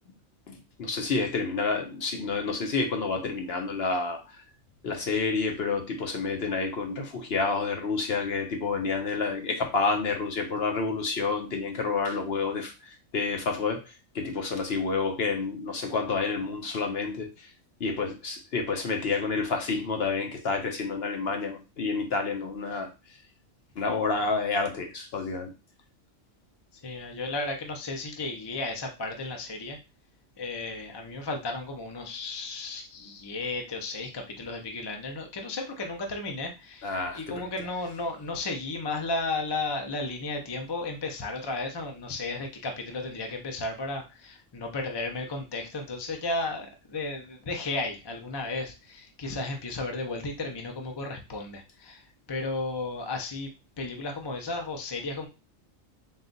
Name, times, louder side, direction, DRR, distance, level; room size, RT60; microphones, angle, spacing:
voice 1, 0.5-4.2 4.8-12.7 13.1-13.8 14.1-17.3 17.8-22.9 23.8-25.5 36.8-37.2, left 4 dB, 55° left, 3 dB, 0.9 m, -29 dB
voice 2, 26.8-29.8 30.4-52.0 52.3-53.5 53.8-55.3, left 2 dB, 30° left, 3 dB, 0.4 m, -34 dB
3.9 x 2.4 x 3.8 m, 0.29 s
omnidirectional pair, 1.4 m